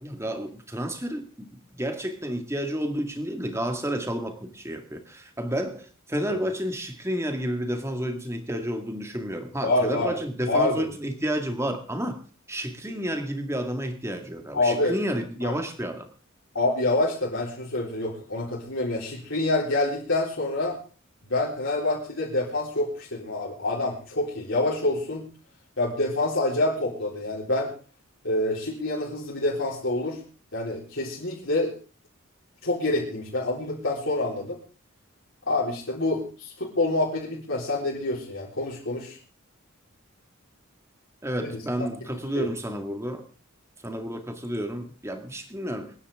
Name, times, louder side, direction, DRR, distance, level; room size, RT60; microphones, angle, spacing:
voice 1, 0.0-12.2 12.5-16.1 41.2-43.2 43.8-45.9, equal, 15° right, 6 dB, 1.9 m, -31 dB
voice 2, 9.6-10.1 10.5-10.8 14.5-15.0 15.4-15.6 16.5-20.8 21.3-25.3 25.8-27.7 28.2-30.2 30.5-31.7 32.6-34.6 35.5-39.2 41.4-41.6 42.4-42.5, left 2 dB, 65° left, -5 dB, 4.0 m, -27 dB
27.0 x 10.0 x 3.6 m, 0.37 s
head